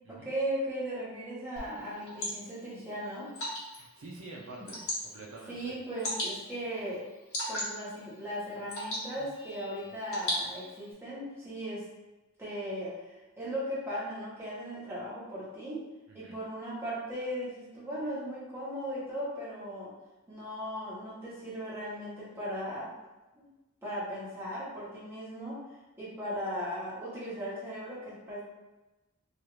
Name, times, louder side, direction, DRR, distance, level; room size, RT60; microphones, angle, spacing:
voice 1, 0.1-3.3 5.5-7.0 7.5-11.8 12.4-12.9 13.4-15.8 16.1-19.9 20.3-22.9 23.3-23.5 23.8-25.6 26.0-28.4, equal, 10° right, -10 dB, 1.2 m, -37 dB
Water / Drip, 1.6-10.9, left 1 dB, 80° left, 1.0 m, -39 dB
voice 2, 3.7-5.7 16.1-16.4, right 2 dB, 65° right, -3 dB, 0.5 m, -47 dB
2.7 x 2.3 x 3.1 m, 1.1 s
head